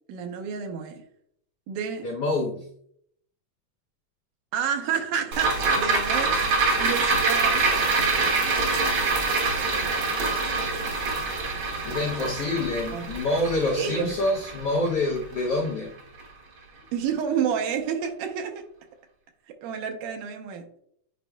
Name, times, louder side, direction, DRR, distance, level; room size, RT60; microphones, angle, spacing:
voice 1, 0.1-1.0 1.7-2.1 4.5-6.4 6.8-7.9 12.9-13.1 13.4-14.1 16.9-18.6 19.5-20.7, right 7 dB, 80° right, 4 dB, 2.4 m, -29 dB
voice 2, 2.0-2.6 11.9-15.9, left 2 dB, 85° left, -2 dB, 1.3 m, -26 dB
sound 1, 5.3-15.8 16.2-16.3, right 3 dB, 60° right, 1.4 m, -25 dB
9.4 x 4.6 x 2.2 m, 0.67 s
omnidirectional pair, 3.7 m